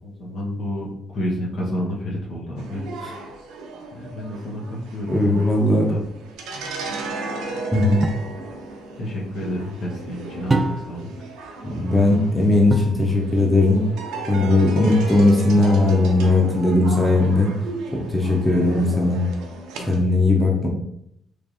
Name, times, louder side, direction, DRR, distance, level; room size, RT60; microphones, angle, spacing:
voice 1, 0.0-2.8 3.9-6.1 8.9-11.1 18.1-18.3 19.7-19.9 20.3-20.4, equal, 65° left, -4 dB, 1.0 m, -30 dB
sound 1, 2.6-20.0, right 2 dB, 85° right, 0.5 m, -35 dB
voice 2, 5.1-5.9 7.7-8.1 11.6-13.8 14.3-17.5 17.9-19.2 19.9-20.7, left 2 dB, 15° left, -2 dB, 0.8 m, -18 dB
sound 2, 8.0-8.3 10.5-11.1 12.7-13.0 15.1-15.6, right 2 dB, 25° right, 0.3 m, -25 dB
3.3 x 3.1 x 2.6 m, 0.75 s
supercardioid pair, 75°, 0 cm